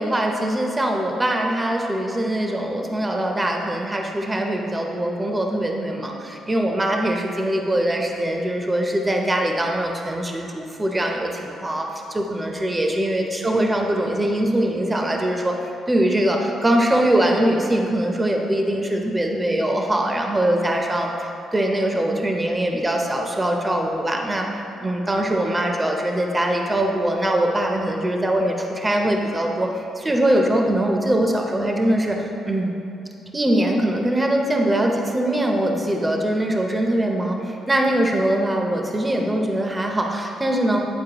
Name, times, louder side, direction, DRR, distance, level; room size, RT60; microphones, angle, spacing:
voice 1, 0.0-15.6 15.9-24.5 24.8-32.7 33.3-40.8, right 1 dB, 15° right, 1 dB, 0.7 m, -22 dB
9.2 x 4.2 x 2.9 m, 2.8 s
cardioid pair, 90°, 0 cm